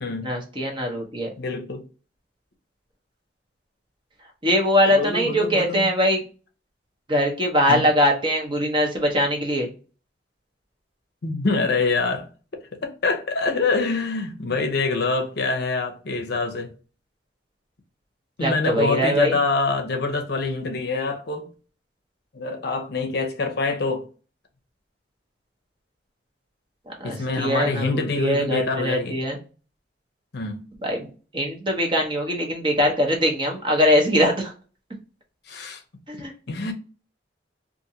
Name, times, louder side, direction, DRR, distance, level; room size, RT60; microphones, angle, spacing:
voice 1, 0.2-1.3 4.4-6.2 7.1-9.7 18.4-19.4 26.9-29.4 30.8-34.5 36.1-36.3, equal, 25° right, 0.8 m, -22 dB
voice 2, 1.4-1.9 4.9-5.9 7.7-7.9 11.2-16.7 18.4-21.5 22.3-24.1 27.0-29.2 30.3-30.6 35.5-35.8 36.5-36.7, left 3 dB, 60° left, 0.6 m, -25 dB
2.5 x 2.5 x 2.7 m
head